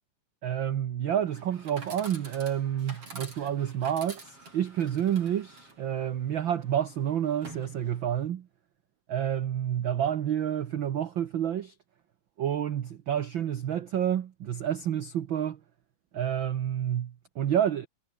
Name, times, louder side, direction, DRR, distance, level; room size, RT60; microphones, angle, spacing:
voice 1, 0.4-8.5 9.1-11.7 12.4-15.6 16.1-17.9, right 10 dB, 65° right, 1.2 m, -29 dB
Chatter / Coin (dropping), 1.2-8.2, right 3 dB, 45° right, 8.6 m, -48 dB
omnidirectional pair, 3.6 m